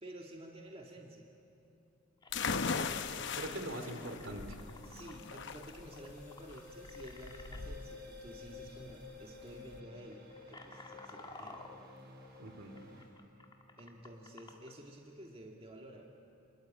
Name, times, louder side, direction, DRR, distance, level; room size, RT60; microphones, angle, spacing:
voice 1, 0.0-1.3 3.1-3.8 4.8-11.6 13.8-16.2, right 1 dB, 30° right, 1 dB, 1.8 m, -51 dB
sound 1, 1.6-1.7 2.2-7.6 8.6-8.8 9.1-9.4 9.9-14.7, left 2 dB, 20° left, 1.8 m, -54 dB
sound 2, 2.3-9.8, left 5 dB, 65° left, 0.8 m, -40 dB
voice 2, 2.5-3.0 3.4-4.6 12.4-12.7, right 1 dB, 70° right, 6 dB, 2.9 m, -43 dB
sound 3, 4.6-13.0, left 3 dB, 55° right, 6.1 m, -53 dB
27.5 x 21.5 x 8.7 m, 2.8 s
head